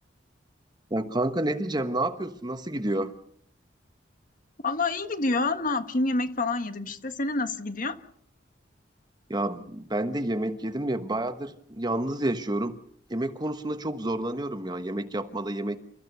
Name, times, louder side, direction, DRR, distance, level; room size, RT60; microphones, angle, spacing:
voice 1, 0.9-3.1 9.3-12.7 13.1-15.8, right 1 dB, 25° right, 9 dB, 1.2 m, -29 dB
voice 2, 4.6-8.0, left 3 dB, 50° left, 9 dB, 1.5 m, -27 dB
29.0 x 14.5 x 6.8 m, 0.69 s
head